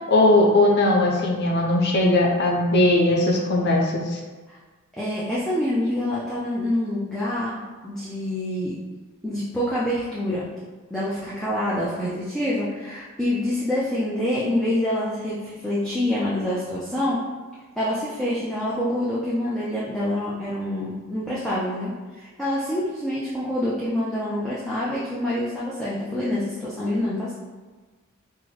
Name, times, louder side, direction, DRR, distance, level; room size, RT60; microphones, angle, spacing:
voice 1, 0.1-4.2, left 1 dB, 50° left, -1 dB, 0.5 m, -19 dB
voice 2, 5.0-8.8 9.2-10.4 10.9-17.2 17.8-27.3, left 1 dB, ahead, -9 dB, 0.4 m, -26 dB
3.7 x 2.1 x 3.1 m, 1.3 s
head